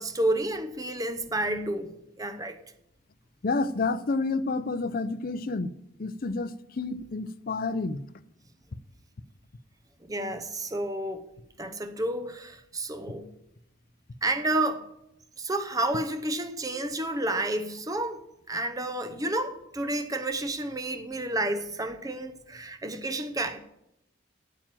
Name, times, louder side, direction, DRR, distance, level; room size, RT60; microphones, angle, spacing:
voice 1, 0.0-1.9 2.2-2.6 10.0-11.3 11.6-13.3 14.2-14.8 15.4-23.6, right 1 dB, 15° right, 0.7 m, -30 dB
voice 2, 3.4-5.7 6.0-8.0, left 3 dB, 45° left, 0.5 m, -29 dB
9.0 x 9.0 x 7.4 m
head